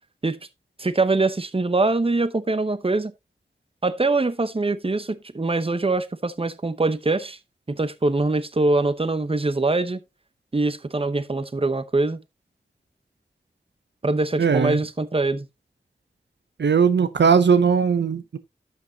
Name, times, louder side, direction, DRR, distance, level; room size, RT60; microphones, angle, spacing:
voice 1, 0.8-3.1 3.8-7.4 7.7-10.0 10.5-12.2 14.0-15.5, right 2 dB, 30° right, 0.8 m, -23 dB
voice 2, 14.4-14.8 16.6-18.4, right 6 dB, 80° right, 0.6 m, -19 dB
11.5 x 6.2 x 2.8 m
wide cardioid pair, 45°, 18 cm